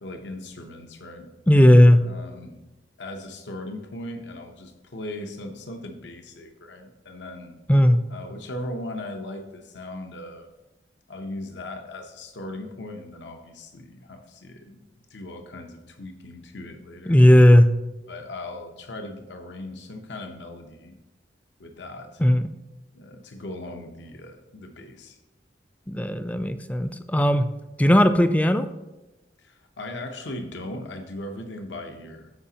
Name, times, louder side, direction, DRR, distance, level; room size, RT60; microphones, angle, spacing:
voice 1, 0.0-1.3 2.0-2.6 3.0-7.6 8.1-10.5 11.1-14.8 15.1-17.2 18.1-21.0 21.6-22.2 22.9-25.2 29.4-32.3, left 1 dB, 80° left, 5 dB, 0.8 m, -38 dB
voice 2, 1.5-2.0 7.7-8.0 17.1-17.7 22.2-22.4 25.9-27.5 27.8-28.7, equal, 10° left, 10 dB, 0.3 m, -16 dB
14.0 x 4.9 x 2.8 m, 1.0 s
head